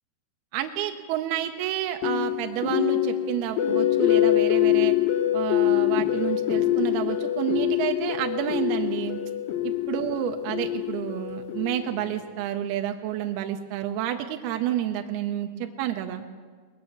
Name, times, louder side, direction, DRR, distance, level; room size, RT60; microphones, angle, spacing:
voice 1, 0.5-5.0 5.3-9.2 9.6-15.5 15.8-16.2, right 11 dB, 85° right, 5 dB, 2.3 m, -29 dB
sound 1, 2.0-12.1, left 13 dB, 70° left, 2.4 m, -25 dB
20.0 x 8.8 x 7.0 m, 1.5 s
omnidirectional pair, 5.1 m